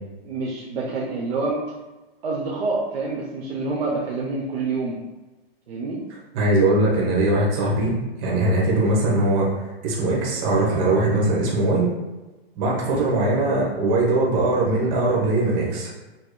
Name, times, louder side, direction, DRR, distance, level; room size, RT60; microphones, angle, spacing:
voice 1, 0.2-1.6 2.2-5.0 5.7-6.0 12.9-13.1, right 3 dB, 70° right, -4 dB, 0.8 m, -27 dB
voice 2, 6.3-9.5 9.8-11.9 12.5-15.9, right 2 dB, 35° right, -4 dB, 1.0 m, -21 dB
5.0 x 2.9 x 2.2 m, 1.1 s
hypercardioid pair, 145°, 31 cm